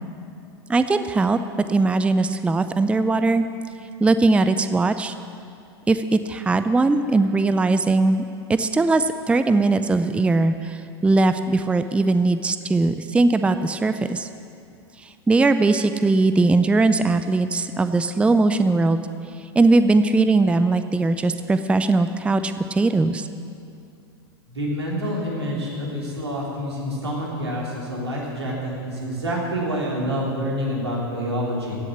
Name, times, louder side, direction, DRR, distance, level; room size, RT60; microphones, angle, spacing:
voice 1, 0.7-1.4 1.7-3.5 4.0-5.1 5.9-8.2 8.5-14.3 15.0-19.0 19.6-23.3, right 3 dB, 10° right, 10 dB, 0.5 m, -20 dB
voice 2, 24.5-31.8, equal, 90° right, -4 dB, 3.6 m, -27 dB
16.0 x 7.2 x 8.1 m, 2.5 s
hypercardioid pair, 95°, 13 cm